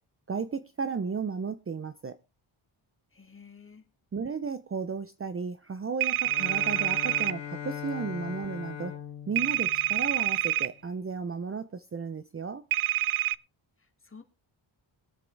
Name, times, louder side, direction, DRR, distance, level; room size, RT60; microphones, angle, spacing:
voice 1, 0.3-2.2 4.1-8.9 9.3-12.6, right 5 dB, 25° right, 0.6 m, -34 dB
voice 2, 3.1-3.8 13.8-14.2, left 5 dB, 25° left, 2.2 m, -51 dB
sound 1, 6.0-7.3 9.4-10.7 12.7-13.3, right 15 dB, 75° right, 0.6 m, -27 dB
Bowed string instrument, 6.2-10.7, left 8 dB, 65° left, 1.3 m, -40 dB
22.0 x 7.5 x 3.3 m
wide cardioid pair, 110°, 49 cm